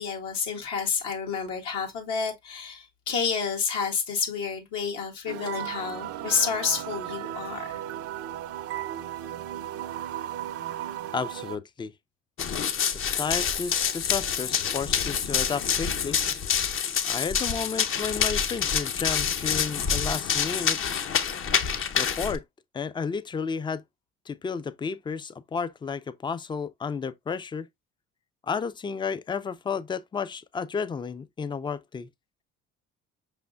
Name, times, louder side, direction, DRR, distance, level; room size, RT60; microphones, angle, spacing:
voice 1, 0.0-7.8, left 6 dB, 75° left, 1.5 m, -29 dB
sound 1, 5.3-11.6, right 12 dB, 55° right, 0.5 m, -35 dB
voice 2, 11.1-11.9 12.9-16.2 17.0-20.8 22.0-22.4 22.7-23.8 24.3-27.7 28.4-32.1, left 5 dB, 15° left, 0.4 m, -32 dB
Run, 12.4-22.4, left 7 dB, 45° left, 0.7 m, -27 dB
5.2 x 3.4 x 2.3 m
supercardioid pair, 65°, 29 cm